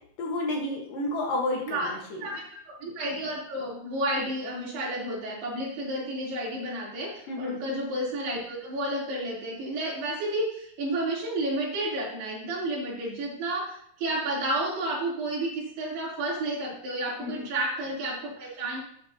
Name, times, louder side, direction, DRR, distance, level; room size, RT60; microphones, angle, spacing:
voice 1, 0.2-1.8 2.1-2.2 7.3-7.6 17.2-17.4, left 2 dB, 65° left, 0 dB, 2.7 m, -30 dB
voice 2, 2.2-18.8, right 1 dB, 70° right, -6 dB, 5.2 m, -31 dB
12.5 x 9.3 x 2.8 m, 0.67 s
omnidirectional pair, 4.8 m